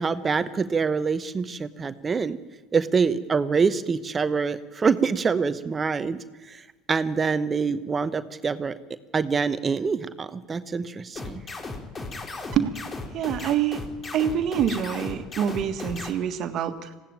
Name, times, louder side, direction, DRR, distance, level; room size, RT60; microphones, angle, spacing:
voice 1, 0.0-2.4 2.7-8.7 9.1-11.4, right 5 dB, 30° right, 12 dB, 1.0 m, -25 dB
sound 1, 11.2-16.1, left 3 dB, 30° left, 3.6 m, -35 dB
voice 2, 13.1-13.9 14.1-16.9, right 9 dB, 55° right, 8 dB, 1.7 m, -26 dB
20.0 x 16.5 x 9.1 m, 1.2 s
hypercardioid pair, 80°, 0 cm